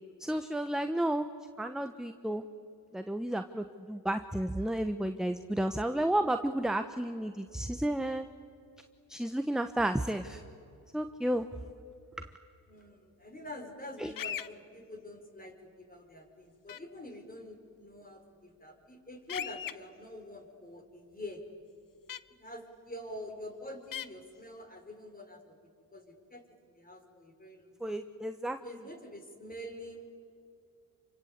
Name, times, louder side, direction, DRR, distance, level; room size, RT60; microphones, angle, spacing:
voice 1, 0.2-1.3 1.6-2.4 2.9-8.2 9.1-10.4 10.9-11.5 14.0-14.1 27.8-28.6, right 1 dB, ahead, 8 dB, 1.1 m, -32 dB
voice 2, 12.7-21.4 22.4-25.6 25.9-28.0 28.6-30.2, left 1 dB, 20° left, 4 dB, 5.4 m, -46 dB
sound 1, 14.2-14.5 16.7-16.8 19.3-19.7 22.1-22.2 23.9-24.1, left 10 dB, 55° left, 1.0 m, -37 dB
28.0 x 25.0 x 8.4 m, 2.4 s
supercardioid pair, 65°, 40 cm